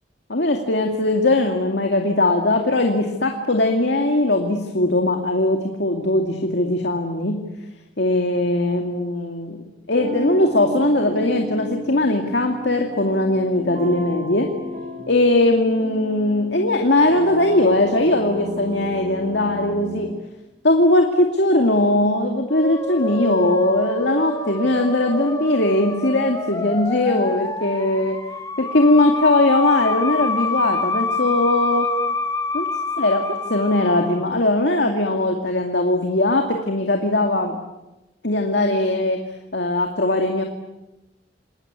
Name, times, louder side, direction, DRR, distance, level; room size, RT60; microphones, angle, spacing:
voice 1, 0.3-7.4 8.0-9.6 9.9-14.5 15.1-20.1 20.6-28.2 28.6-31.9 32.5-32.7 33.0-37.6 38.2-39.2 39.5-40.4, left 2 dB, 65° left, 3 dB, 2.4 m, -20 dB
sound 1, 9.9-20.1, equal, 40° right, 6.1 m, -33 dB
Musical instrument, 22.5-34.3, left 3 dB, 20° left, 2.3 m, -27 dB
28.0 x 21.0 x 9.7 m, 1.0 s
head